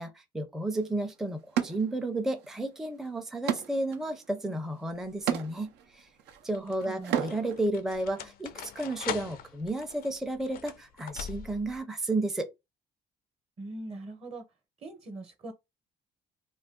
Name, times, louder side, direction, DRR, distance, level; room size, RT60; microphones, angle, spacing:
voice 1, 0.0-6.1 6.4-12.5, right 2 dB, ahead, 0.5 m, -32 dB
sound 1, 0.7-0.8 1.5-2.5 2.8-7.6, right 10 dB, 85° right, 0.6 m, -34 dB
sound 2, 5.0-5.5 6.3-11.8, left 9 dB, 60° left, 0.4 m, -42 dB
voice 2, 6.6-7.3 13.6-14.4 14.8-15.5, right 2 dB, 40° right, 0.9 m, -41 dB
2.4 x 2.3 x 3.6 m
cardioid pair, 110°, 17 cm